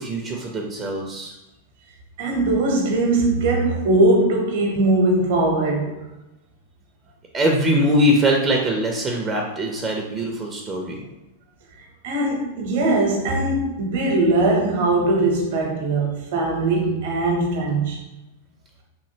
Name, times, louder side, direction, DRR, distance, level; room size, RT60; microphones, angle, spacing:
voice 1, 0.0-1.3 7.3-11.0, equal, 25° right, 1 dB, 0.5 m, -22 dB
voice 2, 2.2-5.9 12.0-18.0, right 2 dB, 60° right, 0 dB, 0.8 m, -20 dB
3.0 x 2.6 x 2.7 m, 0.97 s
hypercardioid pair, 100°, 0 cm